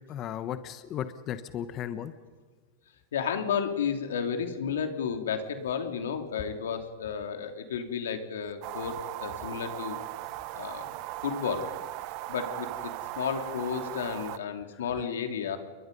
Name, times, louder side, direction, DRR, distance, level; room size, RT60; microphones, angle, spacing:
voice 1, 0.1-2.1 14.7-14.8, left 10 dB, 30° left, 11 dB, 1.0 m, -35 dB
voice 2, 3.1-10.0 10.5-10.9 11.2-11.7 12.3-15.6, left 7 dB, 90° left, 6 dB, 2.9 m, -32 dB
sound 1, 8.6-14.4, right 17 dB, 45° right, 0.8 m, -38 dB
29.5 x 22.5 x 5.4 m, 1.5 s
supercardioid pair, 150°, 0 cm